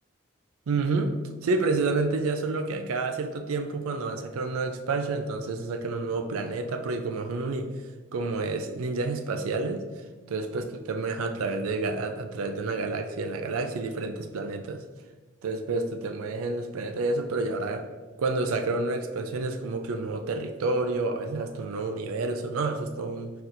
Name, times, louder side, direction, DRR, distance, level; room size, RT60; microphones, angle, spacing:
voice 1, 0.7-1.1 1.4-7.7 8.1-9.8 10.3-14.8 15.4-17.8 18.2-23.3, right 3 dB, 90° right, 6 dB, 0.4 m, -29 dB
4.3 x 4.1 x 2.5 m, 1.3 s
head